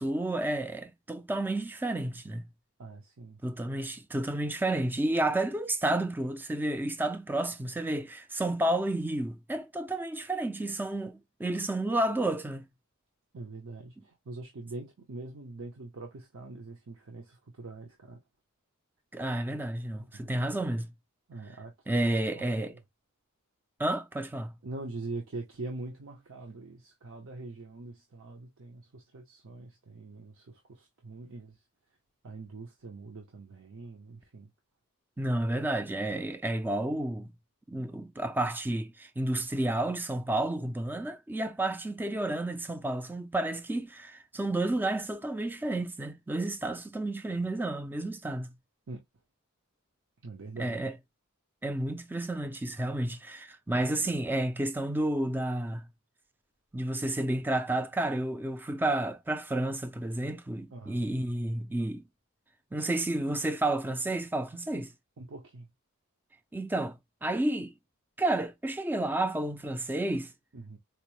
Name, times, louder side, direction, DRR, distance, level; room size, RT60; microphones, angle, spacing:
voice 1, 0.0-2.5 3.4-12.7 19.1-20.9 21.9-22.7 23.8-24.5 35.2-37.3 37.7-48.5 50.6-50.9 51.6-55.9 56.7-62.0 62.7-64.9 66.5-67.0 67.2-67.7 68.2-70.3, right 1 dB, 10° right, 0.3 m, -31 dB
voice 2, 2.8-3.4 13.3-18.2 20.1-20.3 21.3-22.8 24.6-31.6 32.2-34.5 36.1-36.3 48.9-49.0 50.2-50.9 60.7-61.0 65.2-65.7 70.5-70.8, right 2 dB, 65° right, 0.7 m, -43 dB
4.2 x 2.0 x 2.9 m
head